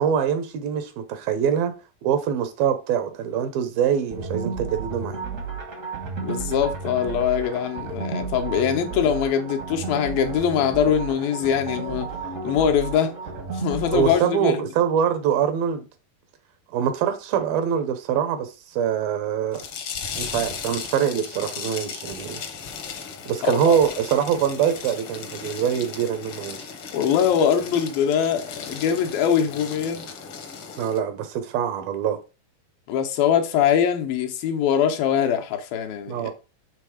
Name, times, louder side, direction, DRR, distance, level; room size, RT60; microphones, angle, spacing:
voice 1, 0.0-1.7 2.0-5.2 13.9-15.8 16.7-19.6 20.2-22.4 23.3-26.6 30.8-32.2 36.1-36.3, right 8 dB, 90° right, 2.9 m, -24 dB
sound 1, 4.1-14.2, right 4 dB, 65° right, 0.7 m, -32 dB
voice 2, 6.2-12.1 12.4-13.1 13.5-14.6 23.5-23.8 26.9-30.0 32.9-36.3, left 8 dB, 85° left, 2.7 m, -22 dB
sound 2, 19.5-31.0, left 6 dB, 65° left, 1.4 m, -36 dB
7.5 x 3.4 x 4.9 m
omnidirectional pair, 4.0 m